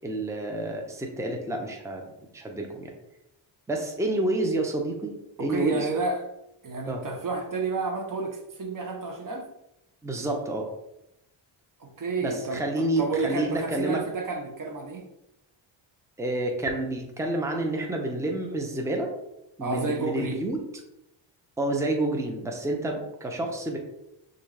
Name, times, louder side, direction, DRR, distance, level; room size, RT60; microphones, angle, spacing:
voice 1, 0.0-2.0 2.3-2.9 3.7-5.9 6.9-7.0 10.0-10.7 12.2-14.0 16.2-19.1 19.6-20.6 21.6-23.8, right 1 dB, 5° right, 1 dB, 0.8 m, -29 dB
voice 2, 5.4-6.3 6.6-9.5 11.8-15.1 19.6-20.4, right 3 dB, 40° right, 3 dB, 0.9 m, -30 dB
6.2 x 2.6 x 3.3 m, 0.86 s
cardioid pair, 95°, 48 cm